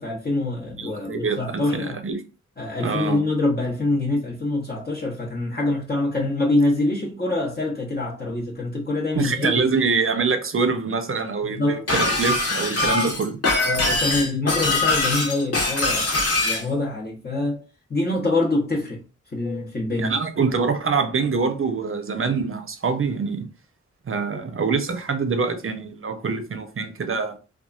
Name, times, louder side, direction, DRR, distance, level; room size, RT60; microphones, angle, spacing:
voice 1, 0.0-2.0 2.6-9.8 11.4-11.9 12.9-13.0 13.6-16.1 16.4-17.6 17.9-19.0 19.3-20.1, left 2 dB, 30° left, 0.8 m, -25 dB
voice 2, 0.8-2.2 2.8-3.2 9.2-13.4 20.0-23.5 24.1-27.4, right 4 dB, 45° right, 0.6 m, -25 dB
Shatter, 11.9-16.6, left 2 dB, 50° left, 1.0 m, -22 dB
2.9 x 2.3 x 2.4 m
cardioid pair, 50°, 31 cm